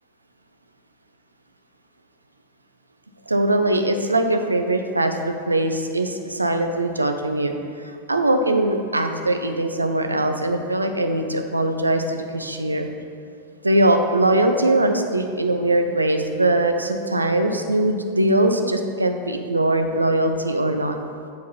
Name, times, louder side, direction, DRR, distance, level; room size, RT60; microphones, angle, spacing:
voice 1, 3.3-7.5 8.1-12.9 13.6-21.0, right 1 dB, 80° right, 6 dB, 0.5 m, -21 dB
7.3 x 4.5 x 4.3 m, 2.3 s
figure-of-eight pair, 90°, 0 cm